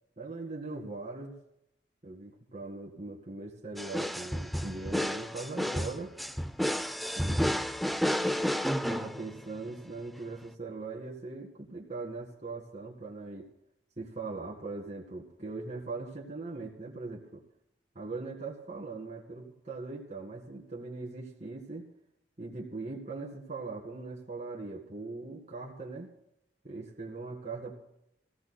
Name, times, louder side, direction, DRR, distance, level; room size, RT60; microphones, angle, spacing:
voice 1, 0.2-1.3 2.0-6.1 7.1-7.5 8.9-13.5 14.0-17.4 18.0-21.8 22.4-26.1 26.6-27.7, right 3 dB, 40° right, -2 dB, 2.1 m, -40 dB
sound 1, 3.8-9.6, equal, ahead, 0.4 m, -31 dB
25.0 x 16.5 x 2.3 m, 0.81 s
head